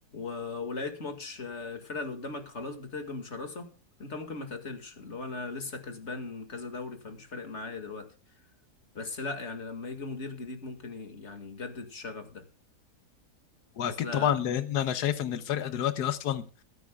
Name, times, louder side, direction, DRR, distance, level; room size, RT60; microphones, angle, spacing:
voice 1, 0.1-3.7 4.0-8.1 8.9-12.5 13.8-14.4 15.6-15.7, left 3 dB, 45° left, 6 dB, 2.3 m, -38 dB
voice 2, 13.8-16.6, left 10 dB, 80° left, 12 dB, 1.5 m, -29 dB
22.5 x 10.0 x 2.4 m, 0.35 s
omnidirectional pair, 1.7 m